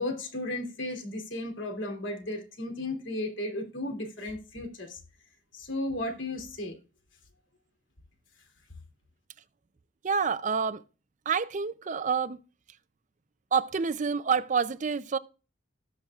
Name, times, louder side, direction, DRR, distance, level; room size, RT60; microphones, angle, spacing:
voice 1, 0.0-5.0 5.5-6.7, left 1 dB, 70° left, 2.9 m, -34 dB
voice 2, 10.0-10.8 11.3-12.4 13.5-15.2, right 6 dB, 40° right, 0.4 m, -28 dB
18.0 x 6.3 x 2.4 m
head